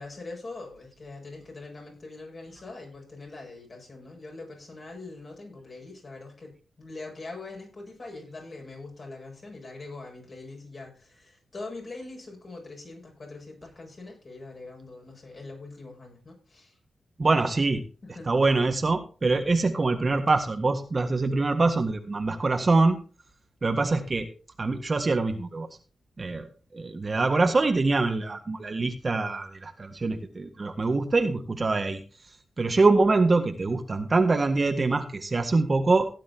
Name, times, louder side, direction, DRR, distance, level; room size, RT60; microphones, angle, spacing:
voice 1, 0.0-16.7 18.0-18.3, left 3 dB, 45° left, 1 dB, 7.5 m, -43 dB
voice 2, 17.2-17.8 18.1-23.0 23.6-24.3 24.6-25.7 26.2-26.5 26.7-32.0 32.6-36.1, right 3 dB, 35° right, 6 dB, 1.7 m, -24 dB
17.0 x 10.0 x 2.9 m, 0.37 s
cardioid pair, 85°, 0 cm